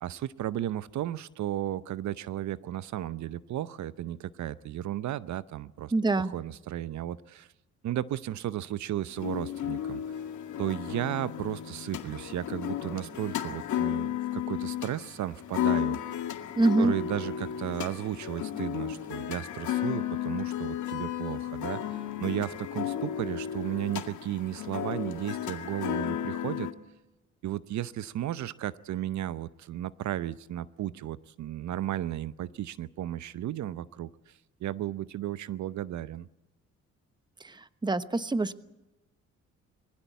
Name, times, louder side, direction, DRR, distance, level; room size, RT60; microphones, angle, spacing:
voice 1, 0.0-7.5 7.8-10.0 10.6-16.2 16.8-26.7 27.4-34.1 34.6-36.3, right 12 dB, 70° right, 16 dB, 0.7 m, -34 dB
voice 2, 5.9-6.3 16.6-16.9 37.4-37.6 37.8-38.6, right 2 dB, 15° right, 13 dB, 1.0 m, -25 dB
sound 1, 9.2-26.7, left 10 dB, 75° left, 2.2 m, -33 dB
22.5 x 16.0 x 8.3 m, 0.98 s
cardioid pair, 90°, 30 cm